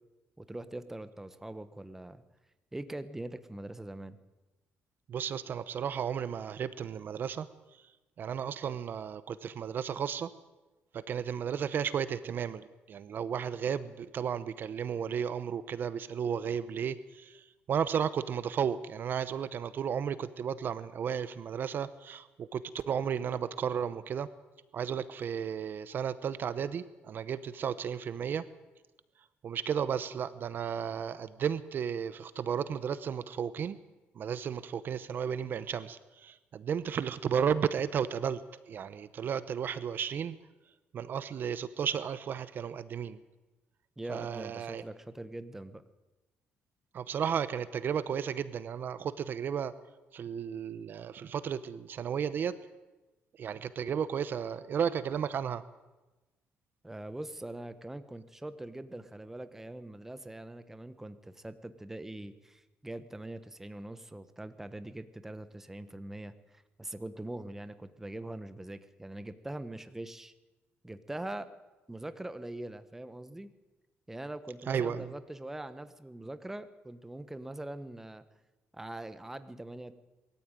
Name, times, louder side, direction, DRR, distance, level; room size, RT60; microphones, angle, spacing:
voice 1, 0.4-2.2 2.7-4.2 44.0-45.8 56.8-70.3 70.8-71.5 71.9-73.5 74.1-78.2 78.7-79.9, right 1 dB, 10° right, 11 dB, 1.1 m, -42 dB
voice 2, 5.1-7.5 8.2-10.3 11.1-12.6 12.9-17.3 17.7-24.3 24.7-28.4 29.4-33.8 34.2-38.4 38.7-40.3 40.9-43.2 44.1-44.8 46.9-49.7 50.1-52.5 53.4-55.6 74.7-75.1, right 8 dB, 50° right, 14 dB, 0.9 m, -33 dB
22.0 x 14.0 x 9.1 m, 1.1 s
cardioid pair, 115°, 4 cm